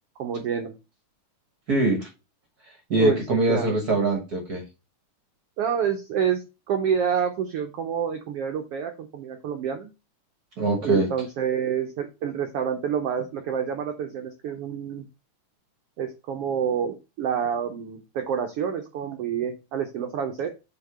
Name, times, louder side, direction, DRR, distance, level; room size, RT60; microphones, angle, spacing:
voice 1, 0.2-0.7 3.0-3.8 5.6-9.9 10.8-15.1 16.0-20.5, right 8 dB, 85° right, 5 dB, 1.3 m, -28 dB
voice 2, 1.7-2.1 2.9-4.6 10.6-11.1, right 2 dB, 65° right, 1 dB, 0.9 m, -23 dB
7.9 x 3.0 x 4.8 m, 0.28 s
omnidirectional pair, 3.7 m